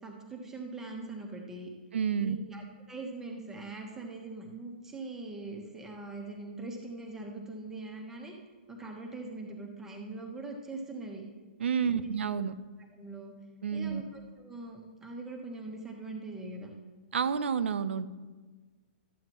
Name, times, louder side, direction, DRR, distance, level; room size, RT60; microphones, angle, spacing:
voice 1, 0.0-1.7 2.2-8.3 8.7-11.2 11.9-12.1 12.9-13.3 13.7-16.7, right 2 dB, 5° right, 0 dB, 1.2 m, -42 dB
voice 2, 1.9-2.4 11.6-12.5 13.6-14.0 17.1-18.1, right 7 dB, 80° right, 13 dB, 0.6 m, -29 dB
13.5 x 8.4 x 3.0 m, 1.3 s
hypercardioid pair, 160°, 6 cm